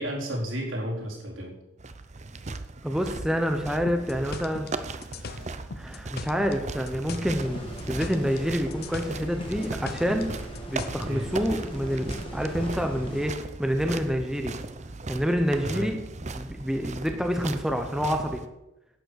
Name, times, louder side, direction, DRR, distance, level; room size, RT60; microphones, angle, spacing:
voice 1, 0.0-1.5 11.1-11.2 15.6-15.9, equal, 65° right, -2 dB, 4.3 m, -32 dB
sound 1, 1.8-18.5, right 3 dB, 35° right, 0.7 m, -38 dB
voice 2, 2.8-4.7 5.8-10.3 10.7-14.6 15.1-18.4, equal, 5° right, 4 dB, 0.9 m, -28 dB
sound 2, 3.9-6.6 6.9-8.5 8.7-11.1, left 3 dB, 50° left, 0.8 m, -39 dB
sound 3, 7.3-13.3, equal, 25° left, 1.9 m, -40 dB
11.5 x 9.0 x 6.5 m, 0.90 s
head